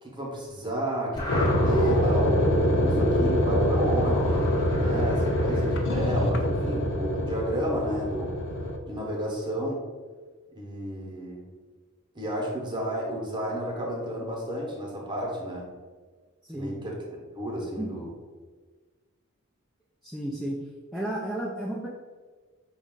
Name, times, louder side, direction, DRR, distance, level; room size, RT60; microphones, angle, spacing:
voice 1, 0.0-4.5 4.8-8.3 8.9-9.8 10.5-11.5 12.1-15.7 16.5-17.0 17.4-18.1, right 1 dB, 20° right, -2 dB, 0.9 m, -31 dB
sound 1, 1.1-6.2, left 1 dB, 20° left, 0.7 m, -33 dB
sound 2, 1.3-8.8, left 1 dB, 55° left, 0.5 m, -25 dB
voice 2, 16.4-16.8 17.8-17.9 20.0-20.6 20.9-21.9, right 1 dB, ahead, -6 dB, 0.3 m, -33 dB
5.3 x 2.4 x 3.7 m, 1.4 s
head